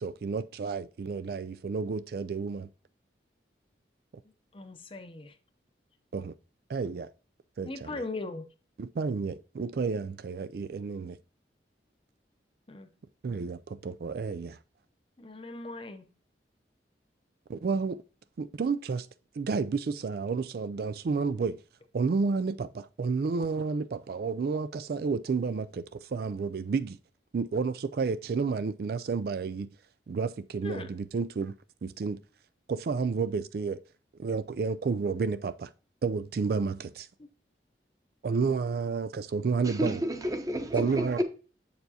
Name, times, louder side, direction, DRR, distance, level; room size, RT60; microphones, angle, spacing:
voice 1, 0.0-2.7 6.1-6.3 6.7-7.1 7.6-8.0 8.8-11.2 13.2-14.6 17.5-18.0 18.4-19.1 19.3-21.6 21.9-27.0 27.3-29.7 30.1-31.5 31.8-32.2 32.7-33.8 34.2-35.7 36.0-37.1 38.2-39.9 40.7-41.2, right 4 dB, 55° right, 0.3 m, -31 dB
voice 2, 4.5-5.3 7.6-8.5 12.7-12.9 15.2-16.0 30.6-30.9, left 3 dB, 30° left, 0.7 m, -39 dB
voice 3, 39.6-41.2, equal, 20° right, 0.9 m, -31 dB
7.9 x 6.8 x 2.8 m
head